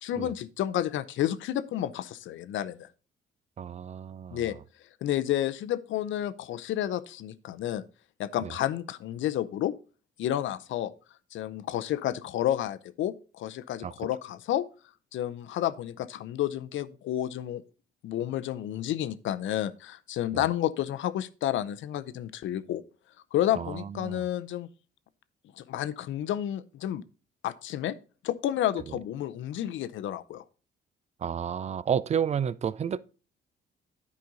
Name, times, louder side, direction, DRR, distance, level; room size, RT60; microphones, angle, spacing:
voice 1, 0.0-2.9 4.3-4.5 5.0-7.8 8.2-9.7 10.2-10.9 11.3-14.6 15.1-17.6 18.0-22.8 23.3-24.7 25.6-27.0 27.4-27.9 28.2-30.4, left 12 dB, 75° left, 0.6 m, -30 dB
voice 2, 3.6-4.5 8.4-8.5 13.8-13.9 20.3-20.5 23.6-24.2 28.9-29.0 31.2-33.0, right 8 dB, 35° right, 0.4 m, -31 dB
9.6 x 5.2 x 3.8 m
cardioid pair, 90°, 20 cm